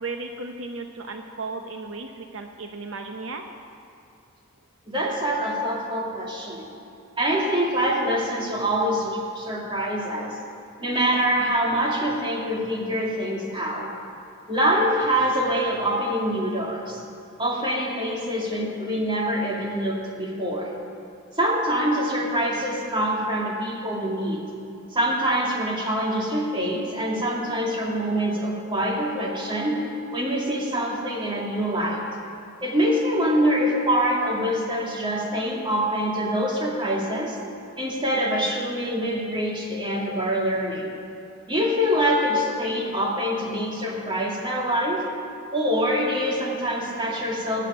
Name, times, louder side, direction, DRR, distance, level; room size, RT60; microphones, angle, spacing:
voice 1, 0.0-3.4, right 3 dB, 70° right, 4 dB, 0.9 m, -35 dB
voice 2, 4.9-6.7 7.2-10.4 10.8-13.9 14.5-17.0 17.4-20.7 21.4-24.4 24.9-29.8 30.1-32.0 32.6-37.4 37.8-40.9 41.5-45.0 45.5-47.7, equal, 25° right, -2 dB, 2.4 m, -25 dB
19.5 x 6.6 x 9.3 m, 2.7 s
head